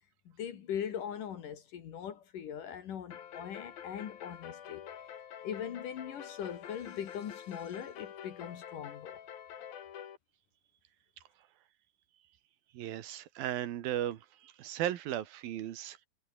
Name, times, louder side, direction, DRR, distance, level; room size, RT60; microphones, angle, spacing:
voice 1, 0.4-5.1 5.4-9.2, left 9 dB, 65° left, 3.4 m, -41 dB
sound 1, 3.1-10.2, left 9 dB, 85° left, 4.2 m, -47 dB
voice 2, 12.7-16.1, right 12 dB, 90° right, 3.3 m, -36 dB
omnidirectional pair, 4.1 m